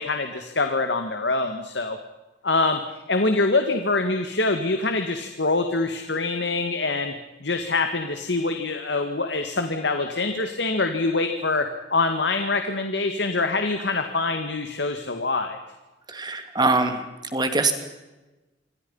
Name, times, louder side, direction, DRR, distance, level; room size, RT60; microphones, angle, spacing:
voice 1, 0.0-2.0 2.4-2.8 3.1-7.1 7.4-15.6, left 3 dB, 75° left, 6 dB, 2.0 m, -25 dB
voice 2, 16.1-17.0 17.3-17.7, right 3 dB, 25° right, 7 dB, 3.0 m, -23 dB
27.0 x 25.5 x 5.6 m, 1.1 s
head